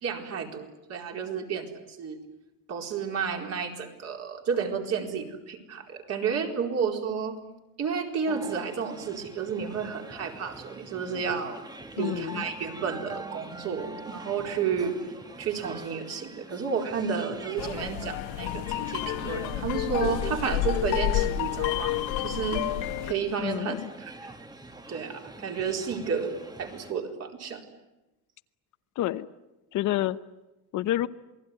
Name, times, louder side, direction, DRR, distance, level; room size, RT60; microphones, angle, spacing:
voice 1, 0.0-2.2 2.7-7.4 7.8-11.6 12.0-15.0 15.4-22.7 23.0-24.3 24.9-27.6, right 6 dB, 45° right, 2 dB, 4.3 m, -31 dB
sound 1, 8.3-26.9, right 2 dB, 10° right, 1.4 m, -44 dB
voice 2, 12.0-12.4 23.4-23.9 29.0-29.3 29.7-30.2 30.7-31.1, left 14 dB, 55° left, 12 dB, 0.9 m, -28 dB
sound 2, 17.6-23.1, left 14 dB, 90° left, 1.7 m, -29 dB
28.0 x 20.0 x 9.8 m, 1.0 s
cardioid pair, 155°, 36 cm